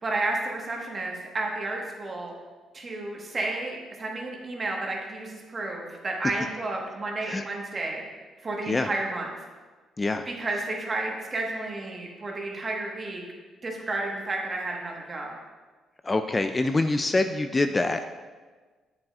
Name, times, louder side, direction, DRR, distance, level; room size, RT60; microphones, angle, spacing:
voice 1, 0.0-2.3 2.7-8.0 8.4-9.3 10.2-13.2 13.6-15.3, right 2 dB, 35° right, -1 dB, 1.4 m, -31 dB
voice 2, 16.0-18.1, left 2 dB, 25° left, 8 dB, 0.3 m, -25 dB
7.7 x 7.3 x 2.4 m, 1.4 s
cardioid pair, 90°, 0 cm